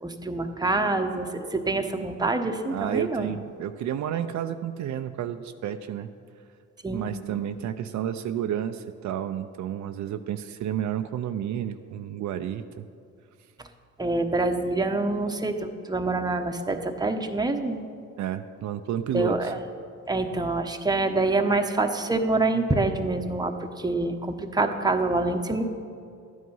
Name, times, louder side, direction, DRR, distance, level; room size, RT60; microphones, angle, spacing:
voice 1, 0.0-3.3 6.8-7.1 14.0-17.8 19.1-19.6 20.1-25.7, right 2 dB, 15° right, 5 dB, 1.0 m, -26 dB
voice 2, 2.7-6.1 6.9-12.8 18.2-19.5, right 10 dB, 70° right, 8 dB, 0.6 m, -31 dB
12.5 x 9.5 x 5.5 m, 2.3 s
cardioid pair, 90°, 30 cm